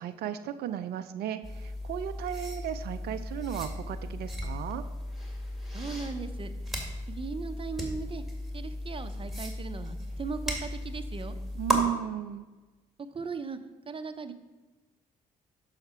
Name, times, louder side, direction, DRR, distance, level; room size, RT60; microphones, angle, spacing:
voice 1, 0.0-4.8 11.5-12.5, right 10 dB, 65° right, 10 dB, 0.4 m, -34 dB
sound 1, 1.4-11.8, equal, ahead, 1.9 m, -36 dB
voice 2, 5.7-6.5 7.1-8.2 8.5-11.4 13.1-13.6 13.9-14.3, right 4 dB, 30° right, 9 dB, 0.7 m, -38 dB
6.7 x 5.7 x 4.3 m, 1.2 s
hypercardioid pair, 45°, 18 cm